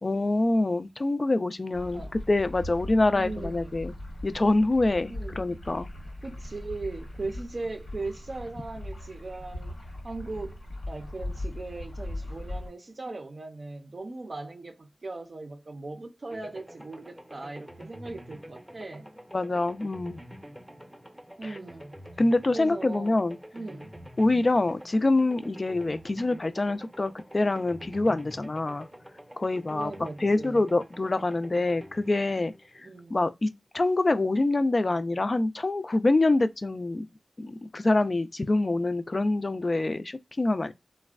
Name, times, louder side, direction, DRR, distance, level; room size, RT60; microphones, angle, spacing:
voice 1, 0.0-3.9 4.2-5.9 19.3-20.2 21.4-21.6 22.2-23.4 24.2-28.9 29.4-29.9 30.2-32.5 33.1-37.1 37.4-40.7, left 2 dB, 45° left, 0.3 m, -25 dB
sound 1, 1.7-12.7, left 1 dB, 85° left, 1.1 m, -39 dB
voice 2, 3.1-3.7 5.1-5.6 6.2-9.7 10.0-10.6 10.9-19.1 21.4-21.9 22.5-23.2 23.5-23.9 29.7-30.6 32.8-33.2, right 2 dB, 55° right, 0.4 m, -38 dB
sound 2, 16.3-33.2, equal, 10° right, 0.6 m, -47 dB
3.2 x 2.1 x 2.3 m
cardioid pair, 55°, 0 cm